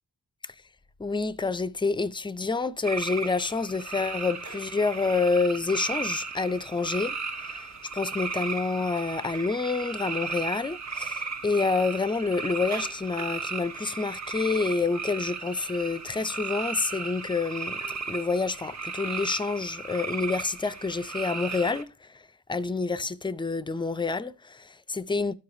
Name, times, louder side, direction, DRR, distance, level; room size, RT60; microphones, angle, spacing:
voice 1, 1.0-17.8 18.1-22.2 22.5-25.3, left 4 dB, 15° left, 0.3 m, -28 dB
sound 1, 2.8-21.8, right 4 dB, 45° right, 0.7 m, -35 dB
12.5 x 4.8 x 2.5 m
wide cardioid pair, 95°, 37 cm